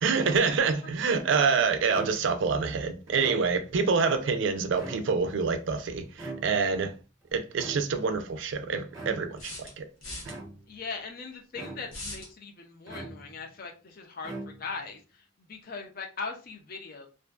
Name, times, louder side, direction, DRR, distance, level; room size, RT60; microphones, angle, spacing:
voice 1, 0.0-6.9 7.3-9.8, right 5 dB, 60° right, 0.4 m, -26 dB
sound 1, 1.9-2.5 3.1-3.8 4.6-5.4 6.2-6.9 7.6-8.2 8.9-9.5 10.2-10.8 11.5-12.1 12.9-13.6 14.2-14.9, right 2 dB, 15° right, 0.7 m, -42 dB
sound 2, 7.3-7.4 9.4-10.3 11.9-12.3, left 2 dB, 80° left, 0.9 m, -40 dB
voice 2, 10.7-17.1, left 4 dB, 45° left, 0.5 m, -40 dB
2.4 x 2.2 x 2.3 m
head